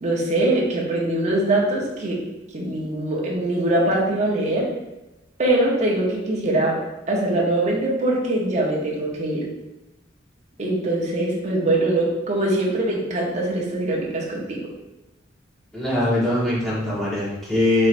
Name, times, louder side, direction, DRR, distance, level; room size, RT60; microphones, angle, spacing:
voice 1, 0.0-2.2 2.5-4.7 5.4-6.8 7.1-9.5 10.6-14.7, right 1 dB, 40° right, -3 dB, 0.8 m, -22 dB
voice 2, 15.7-17.9, left 1 dB, ahead, -9 dB, 1.3 m, -22 dB
4.3 x 3.1 x 2.5 m, 0.99 s
head